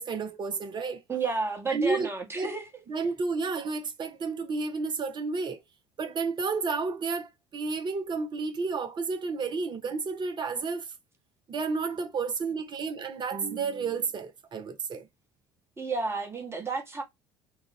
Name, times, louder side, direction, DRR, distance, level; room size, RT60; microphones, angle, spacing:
voice 1, 0.0-1.0 1.7-2.5 2.9-5.6 6.0-10.9 11.5-15.1, right 4 dB, 35° right, 1.0 m, -31 dB
voice 2, 1.1-2.8 15.8-17.0, right 4 dB, 20° right, 1.4 m, -31 dB
3.7 x 2.5 x 3.2 m
figure-of-eight pair, 60°, 13 cm